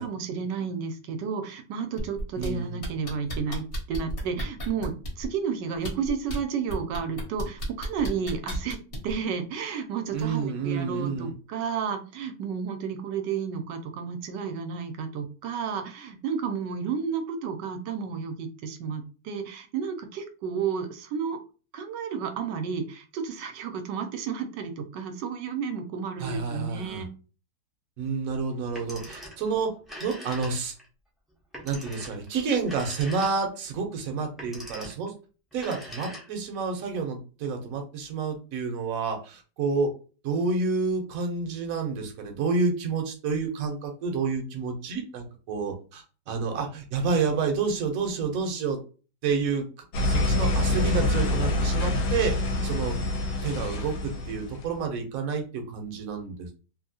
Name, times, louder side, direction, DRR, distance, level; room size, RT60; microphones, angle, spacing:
voice 1, 0.0-8.8 9.0-21.4 21.7-27.1, right 6 dB, 80° right, 7 dB, 1.2 m, -32 dB
sound 1, 2.0-2.5 2.8-5.3 5.8-6.4 6.7-9.1 10.2-10.3, equal, 40° left, 1.0 m, -34 dB
voice 2, 2.4-2.8 10.1-11.3 26.2-27.1 28.0-29.7 30.0-30.7 31.6-35.1 35.5-39.9 40.2-48.8 49.2-49.7 50.0-52.3 52.6-53.0 53.4-56.5, right 4 dB, 60° right, 3 dB, 1.1 m, -29 dB
Telephone, 28.6-29.5 29.8-30.8 31.5-33.6 34.3-35.1 35.5-36.5, equal, ahead, 0.4 m, -42 dB
sound 2, 49.9-54.7, left 2 dB, 65° left, 1.0 m, -26 dB
2.9 x 2.7 x 2.7 m, 0.35 s
omnidirectional pair, 1.9 m